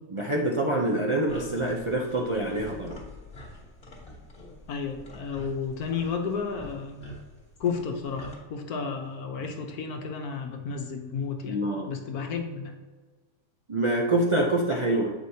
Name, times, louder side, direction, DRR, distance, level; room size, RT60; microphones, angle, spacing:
voice 1, 0.1-3.0 11.5-11.9 13.7-15.1, right 1 dB, 55° right, -1 dB, 0.3 m, -26 dB
sound 1, 1.3-8.3, left 1 dB, 40° left, 1.6 m, -46 dB
voice 2, 4.7-7.0 7.6-11.6 11.9-12.8, left 5 dB, 80° left, 4 dB, 1.3 m, -32 dB
7.8 x 5.0 x 2.8 m, 1.3 s
omnidirectional pair, 1.6 m